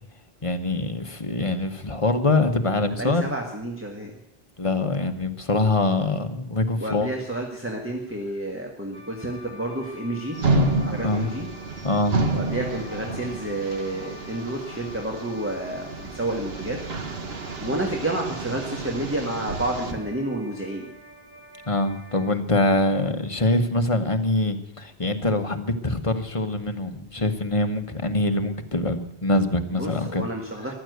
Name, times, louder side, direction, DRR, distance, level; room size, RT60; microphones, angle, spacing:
voice 1, 0.4-3.3 4.6-7.1 11.0-11.3 11.8-12.2 21.7-30.2, left 2 dB, 30° left, 6 dB, 1.2 m, -24 dB
voice 2, 3.0-4.1 6.8-10.6 10.8-11.5 12.3-16.8 17.6-20.9 29.8-30.7, right 1 dB, 10° right, 0 dB, 1.7 m, -30 dB
sound 1, 8.9-22.3, left 2 dB, 45° right, 2.4 m, -47 dB
sound 2, 10.4-19.9, right 2 dB, 70° right, 1.7 m, -29 dB
14.5 x 11.5 x 8.0 m, 0.80 s
omnidirectional pair, 1.1 m